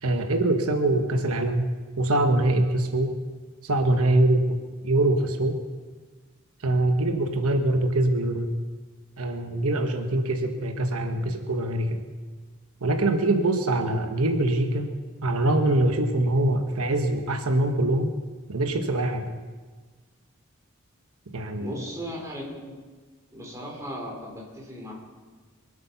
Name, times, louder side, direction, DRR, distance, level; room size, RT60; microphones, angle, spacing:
voice 1, 0.0-3.1 3.6-4.5 4.8-5.6 6.6-8.5 9.2-12.0 12.8-14.9 15.2-18.1 18.5-19.3 21.3-21.7, right 1 dB, 85° right, 6 dB, 1.1 m, -23 dB
voice 2, 21.6-22.8 23.3-24.9, equal, 15° right, -3 dB, 3.6 m, -37 dB
23.5 x 8.7 x 5.7 m, 1.4 s
head